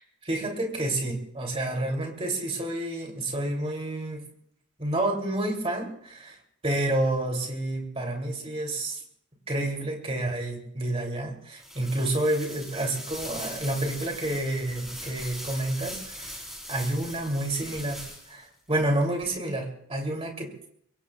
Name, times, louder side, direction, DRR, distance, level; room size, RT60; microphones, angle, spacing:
voice 1, 0.2-4.2 4.8-6.4 6.6-9.0 9.5-16.4 16.7-18.0 18.3-20.7, right 1 dB, 30° right, 2 dB, 2.9 m, -29 dB
sound 1, 11.6-18.5, equal, ahead, 4.0 m, -40 dB
24.0 x 22.0 x 2.4 m, 0.69 s
head